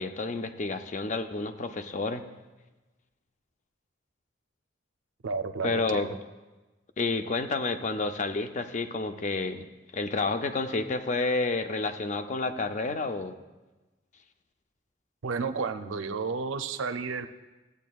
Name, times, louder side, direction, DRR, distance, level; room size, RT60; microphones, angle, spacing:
voice 1, 0.0-2.2 5.6-6.1 7.0-9.7 9.9-13.3, left 3 dB, 35° left, 8 dB, 0.4 m, -30 dB
voice 2, 5.2-6.2 15.2-17.3, right 4 dB, 80° right, 10 dB, 0.5 m, -32 dB
14.0 x 8.2 x 2.3 m, 1.1 s
head